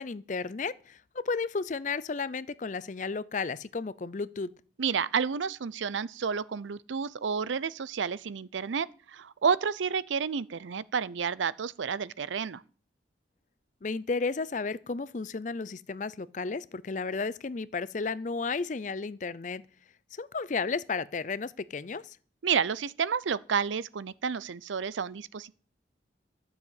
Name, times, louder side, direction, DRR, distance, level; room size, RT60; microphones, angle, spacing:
voice 1, 0.0-4.5 13.8-19.6 20.1-22.2, left 4 dB, 40° left, 0.5 m, -33 dB
voice 2, 4.8-12.6 22.4-25.6, right 6 dB, 85° right, 0.5 m, -30 dB
12.5 x 7.2 x 8.2 m
head